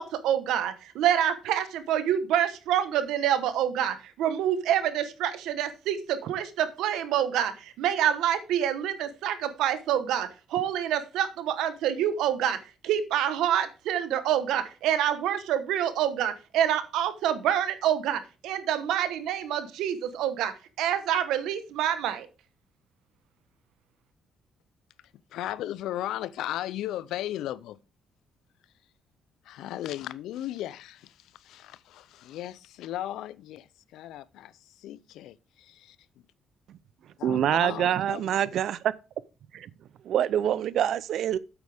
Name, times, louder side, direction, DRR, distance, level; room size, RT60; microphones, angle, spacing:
voice 1, 0.0-22.3, right 10 dB, 90° right, 1.1 m, -27 dB
voice 2, 25.3-27.8 29.5-33.7 33.9-34.5 34.8-36.0 37.2-38.4, left 13 dB, 85° left, 0.5 m, -36 dB
voice 3, 37.2-38.9 39.5-39.7 40.0-41.4, right 10 dB, 75° right, 0.5 m, -25 dB
8.3 x 8.2 x 3.5 m
cardioid pair, 90°, 0 cm